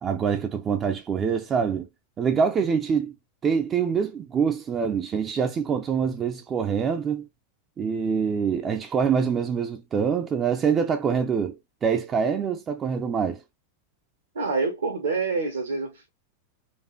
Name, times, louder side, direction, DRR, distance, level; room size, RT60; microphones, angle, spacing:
voice 1, 0.0-1.9 2.2-3.1 3.4-7.3 7.8-13.4, right 6 dB, 25° right, 0.5 m, -25 dB
voice 2, 14.3-16.1, right 4 dB, 70° right, 1.0 m, -27 dB
4.4 x 2.4 x 3.0 m
figure-of-eight pair, 90°, 0 cm